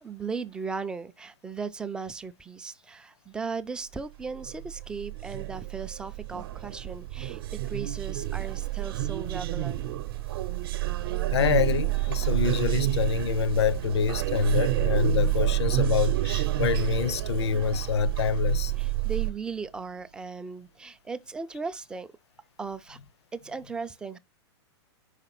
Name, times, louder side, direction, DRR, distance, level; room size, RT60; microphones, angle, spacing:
voice 1, 0.0-9.8 18.8-22.1 22.6-23.0 23.3-24.2, right 5 dB, 5° right, 0.3 m, -37 dB
sound 1, 4.3-19.3, right 15 dB, 55° right, 0.7 m, -29 dB
voice 2, 11.3-18.7, left 7 dB, 75° left, 0.7 m, -26 dB
sound 2, 11.4-20.3, right 11 dB, 85° right, 0.5 m, -40 dB
5.3 x 4.9 x 5.8 m
hypercardioid pair, 155°, 14 cm